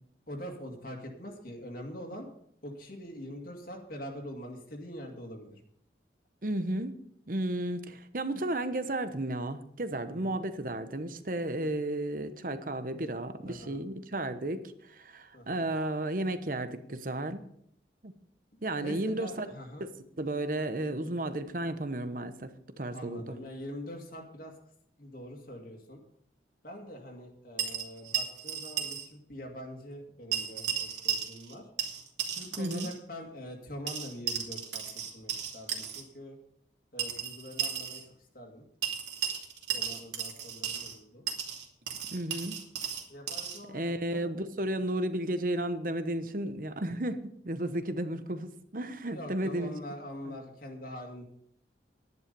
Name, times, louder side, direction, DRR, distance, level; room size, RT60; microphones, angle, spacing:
voice 1, 0.3-2.3 2.6-5.6 10.1-10.4 13.4-13.8 15.3-15.7 18.8-19.9 22.9-24.5 25.0-26.0 26.6-31.7 32.3-34.8 35.1-36.4 36.9-38.0 38.3-38.6 39.7-41.3 43.1-44.3 49.1-51.2, equal, 55° left, 0 dB, 2.2 m, -44 dB
voice 2, 6.4-7.0 7.3-17.4 18.0-18.1 18.6-19.5 19.8-19.9 20.2-22.5 22.8-23.3 32.6-32.9 42.1-42.6 43.7-49.7 50.3-50.4, right 1 dB, 50° right, 10 dB, 1.0 m, -33 dB
sound 1, 27.6-29.1 29.3-29.4 30.3-31.5 31.8-33.0 33.9-36.0 37.0-38.0 38.8-41.0 41.3-43.6, right 8 dB, 85° right, 2.7 m, -34 dB
11.5 x 11.0 x 5.4 m, 0.70 s
head